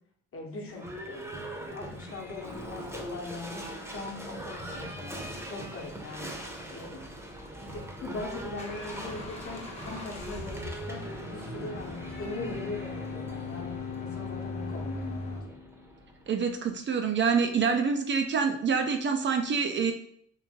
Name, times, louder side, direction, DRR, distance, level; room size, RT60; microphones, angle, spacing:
voice 1, 0.3-5.2 5.5-6.3 6.7-7.0 7.6-15.5, left 3 dB, 50° left, 0 dB, 1.0 m, -40 dB
Livestock farm animals working animals / Bell, 0.7-16.6, right 1 dB, 10° right, 0.7 m, -42 dB
sound 1, 8.3-15.4, left 2 dB, 20° left, 0.8 m, -41 dB
Bowed string instrument, 11.1-16.5, left 6 dB, 65° left, 0.7 m, -42 dB
voice 2, 16.3-19.9, right 5 dB, 40° right, 5 dB, 0.4 m, -26 dB
3.0 x 2.5 x 3.6 m, 0.65 s
cardioid pair, 90°, 30 cm